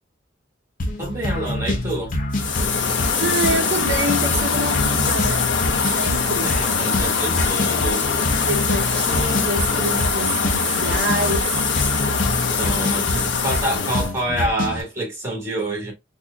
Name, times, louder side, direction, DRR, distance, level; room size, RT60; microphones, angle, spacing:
sound 1, 0.8-14.8, left 1 dB, 45° left, 0.8 m, -27 dB
voice 1, 1.0-2.1 6.4-8.1 12.6-15.9, right 1 dB, 15° right, 1.6 m, -27 dB
sound 2, 2.3-14.1, left 5 dB, 80° left, 0.8 m, -22 dB
voice 2, 3.2-5.6 5.9-6.6 8.4-11.7, right 2 dB, 65° right, 0.7 m, -27 dB
4.0 x 2.7 x 2.3 m
head